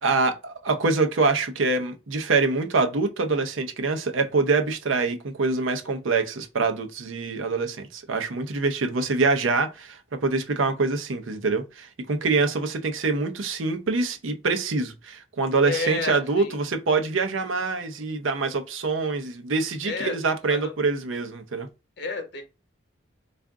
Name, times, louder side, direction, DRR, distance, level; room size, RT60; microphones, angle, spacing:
voice 1, 0.0-21.7, right 3 dB, 75° right, 0.7 m, -25 dB
voice 2, 15.6-16.6 19.8-20.2 20.4-20.9 22.0-22.4, left 3 dB, 55° left, 0.9 m, -31 dB
3.6 x 2.5 x 3.5 m
head